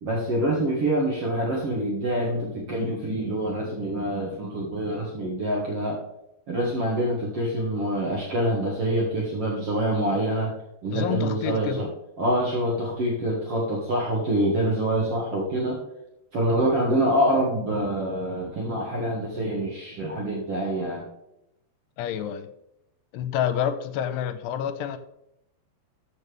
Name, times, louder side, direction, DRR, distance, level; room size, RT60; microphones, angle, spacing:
voice 1, 0.0-6.0 6.5-10.5 10.8-11.9 12.2-15.8 16.3-21.1, right 1 dB, 55° right, -3 dB, 1.7 m, -26 dB
voice 2, 10.9-11.8 22.0-22.5 23.1-25.0, left 9 dB, 85° left, 11 dB, 2.7 m, -28 dB
13.5 x 6.6 x 3.4 m, 0.83 s
omnidirectional pair, 4.9 m